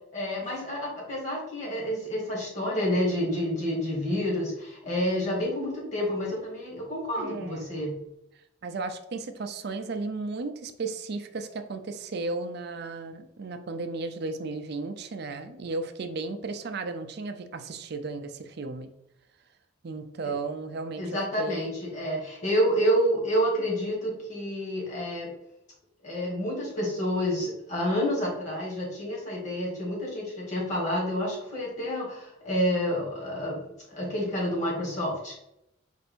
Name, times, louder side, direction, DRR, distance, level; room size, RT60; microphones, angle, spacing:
voice 1, 0.1-8.0 21.0-25.3 26.0-33.6 33.9-35.3, equal, 35° left, -4 dB, 1.7 m, -29 dB
voice 2, 7.2-7.9 8.6-18.9 19.8-21.0 21.4-21.7, right 3 dB, 50° right, 8 dB, 0.4 m, -34 dB
4.4 x 2.6 x 4.3 m, 0.82 s
head